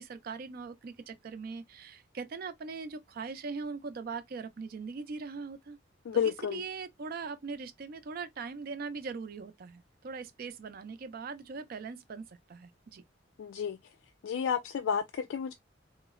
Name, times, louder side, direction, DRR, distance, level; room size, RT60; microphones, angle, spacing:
voice 1, 0.0-5.8 6.2-13.0, right 4 dB, 50° right, 0.4 m, -41 dB
voice 2, 6.1-6.6 13.4-13.8 14.2-15.5, left 7 dB, 90° left, 0.3 m, -31 dB
3.7 x 2.0 x 2.2 m
head